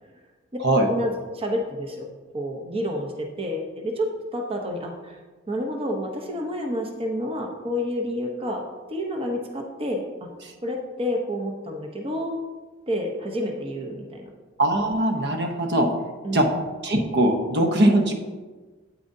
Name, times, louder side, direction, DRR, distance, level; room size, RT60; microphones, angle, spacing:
voice 1, 0.9-2.1 2.3-5.2 5.5-8.6 8.9-10.0 10.6-12.3 12.9-14.3 16.2-16.5, equal, 30° right, 2 dB, 0.8 m, -29 dB
voice 2, 14.6-15.9 16.3-16.5 16.8-18.1, right 1 dB, 55° right, 4 dB, 0.9 m, -21 dB
8.9 x 8.4 x 2.7 m, 1.3 s
head